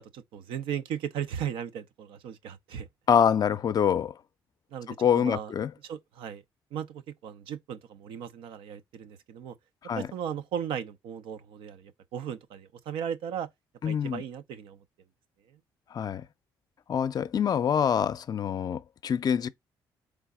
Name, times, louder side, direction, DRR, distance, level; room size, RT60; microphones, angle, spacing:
voice 1, 0.0-2.9 4.7-5.5 5.8-6.4 6.7-9.6 9.9-13.5 13.9-14.8, right 8 dB, 85° right, 0.6 m, -36 dB
voice 2, 3.1-4.1 5.0-5.7 9.8-10.1 13.8-14.2 15.9-16.2 16.9-19.5, left 8 dB, 50° left, 0.5 m, -25 dB
4.0 x 3.4 x 3.5 m
cardioid pair, 75°, 9 cm